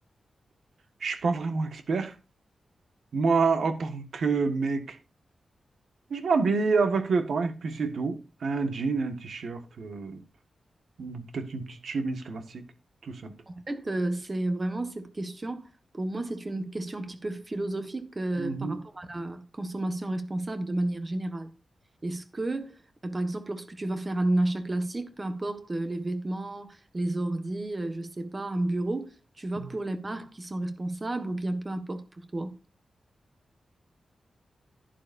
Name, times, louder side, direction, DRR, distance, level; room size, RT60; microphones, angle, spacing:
voice 1, 1.0-2.1 3.1-5.0 6.1-10.2 11.0-12.6 13.0-13.3 18.4-18.8 29.6-29.7, right 4 dB, 65° right, 1.6 m, -28 dB
voice 2, 13.5-15.7 15.9-21.5 22.0-32.6, right 1 dB, 25° right, 1.4 m, -32 dB
11.5 x 11.0 x 2.6 m
wide cardioid pair, 155°, 0 cm